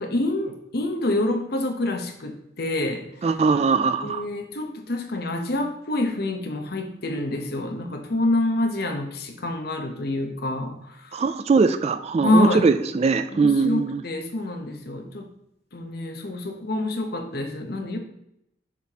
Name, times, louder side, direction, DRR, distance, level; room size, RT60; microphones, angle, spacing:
voice 1, 0.0-3.1 4.0-11.2 12.2-12.6 13.3-15.3 15.7-18.0, left 1 dB, 55° left, 4 dB, 1.0 m, -27 dB
voice 2, 3.2-4.3 11.1-14.0, right 4 dB, 35° right, 10 dB, 0.3 m, -21 dB
7.3 x 5.7 x 3.0 m, 0.79 s
head